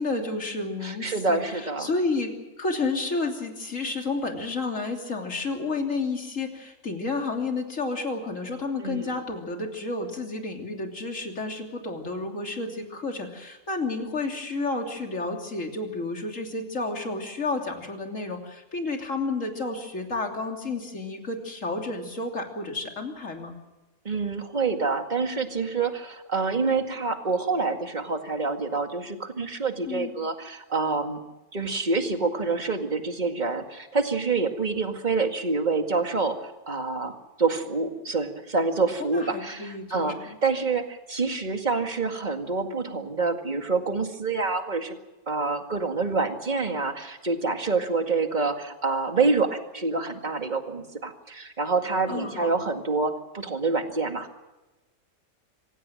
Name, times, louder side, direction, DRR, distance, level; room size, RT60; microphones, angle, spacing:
voice 1, 0.0-23.6 29.9-30.1 39.0-40.3 52.1-52.5, left 3 dB, 60° left, 2 dB, 3.5 m, -31 dB
voice 2, 0.8-1.9 8.8-9.2 24.0-31.2 31.5-45.0 45.3-54.4, right 4 dB, 30° right, 5 dB, 2.2 m, -27 dB
26.0 x 16.5 x 7.7 m, 1.1 s
omnidirectional pair, 1.5 m